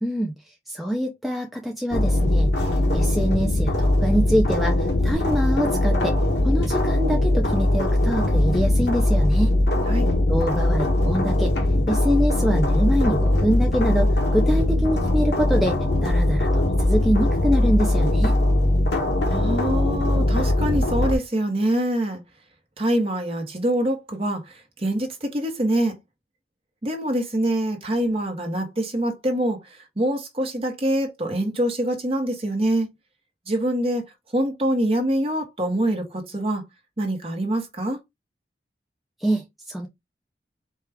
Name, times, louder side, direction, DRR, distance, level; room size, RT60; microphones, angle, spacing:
voice 1, 0.0-9.6 10.3-11.5 11.9-18.4 39.2-39.9, equal, ahead, 0.4 m, -25 dB
sound 1, 1.9-21.2, left 1 dB, 75° left, 1.1 m, -21 dB
voice 2, 19.3-22.2 22.8-26.0 26.8-32.9 33.5-34.0 34.3-36.6 37.0-38.0, right 1 dB, 35° right, 1.0 m, -25 dB
4.4 x 2.4 x 3.4 m
head